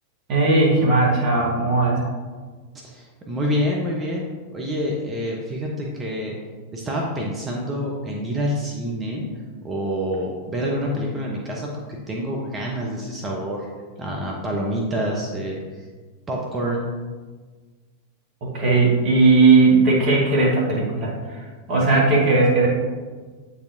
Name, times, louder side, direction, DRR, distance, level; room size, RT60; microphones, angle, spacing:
voice 1, 0.3-2.0 18.4-22.7, right 3 dB, 40° right, -4 dB, 1.8 m, -18 dB
voice 2, 2.8-6.3 6.7-9.3 9.6-13.7 14.0-15.6 16.3-16.9, equal, 20° right, -2 dB, 0.8 m, -27 dB
8.2 x 4.2 x 2.7 m, 1.4 s
figure-of-eight pair, 90°, 0 cm